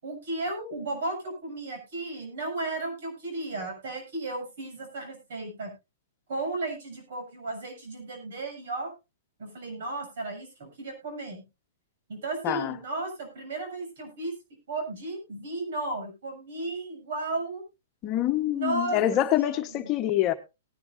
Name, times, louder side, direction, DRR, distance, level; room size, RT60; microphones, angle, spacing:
voice 1, 0.0-5.7 6.3-8.9 9.4-11.4 12.1-14.4 14.7-17.6 18.4-19.9, right 2 dB, 70° right, 7.4 m, -34 dB
voice 2, 12.4-12.7 18.0-20.3, left 13 dB, 30° left, 1.1 m, -25 dB
19.0 x 11.0 x 2.6 m
hypercardioid pair, 145°, 0 cm